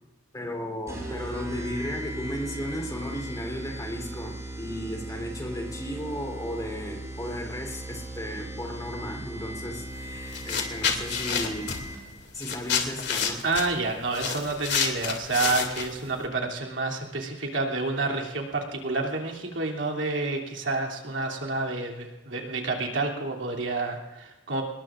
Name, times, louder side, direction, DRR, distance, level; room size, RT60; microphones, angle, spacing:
voice 1, 0.3-11.8 12.3-13.4, equal, 20° left, 2 dB, 3.6 m, -35 dB
sound 1, 0.9-12.2, right 1 dB, 15° right, 6.0 m, -38 dB
sound 2, 9.9-10.0 10.3-16.2, left 7 dB, 65° left, 2.6 m, -29 dB
voice 2, 13.4-24.6, right 3 dB, 75° right, 0 dB, 3.0 m, -29 dB
26.5 x 21.0 x 2.6 m, 1.0 s
head